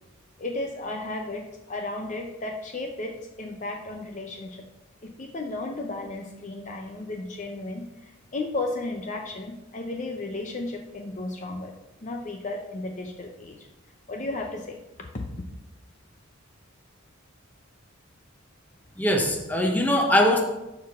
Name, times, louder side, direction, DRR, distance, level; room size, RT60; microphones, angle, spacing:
voice 1, 0.4-4.6 5.0-11.7 12.0-13.7 14.1-15.4, left 2 dB, 35° left, 3 dB, 0.6 m, -34 dB
voice 2, 19.0-20.4, left 1 dB, 10° left, 2 dB, 0.9 m, -21 dB
13.5 x 4.7 x 3.6 m, 0.99 s
head